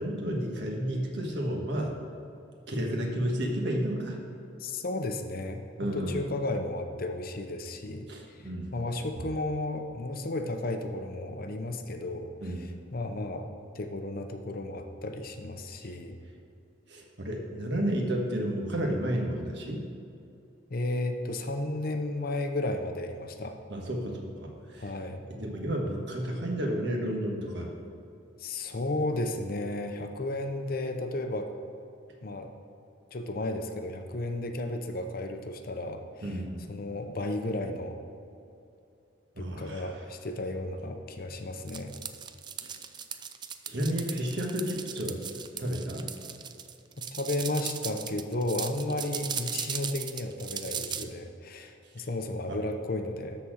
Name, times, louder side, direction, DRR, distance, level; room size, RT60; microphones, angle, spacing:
voice 1, 0.0-1.9 2.7-4.2 5.8-6.2 8.1-8.8 12.4-12.7 16.9-19.8 23.7-24.9 25.3-27.7 36.2-36.6 39.3-39.9 42.6-42.7 43.7-45.2 45.6-46.1 52.0-52.1 52.4-52.6, equal, 60° right, 0 dB, 1.4 m, -32 dB
voice 2, 4.6-8.4 8.7-13.5 13.7-16.2 20.7-23.6 24.8-25.2 28.4-31.5 32.2-32.5 33.1-36.4 36.7-38.0 39.4-41.9 47.1-53.4, left 2 dB, 50° left, 6 dB, 0.7 m, -33 dB
sound 1, 41.7-51.0, right 7 dB, 25° right, 0.3 m, -37 dB
12.5 x 4.2 x 6.4 m, 2.7 s
head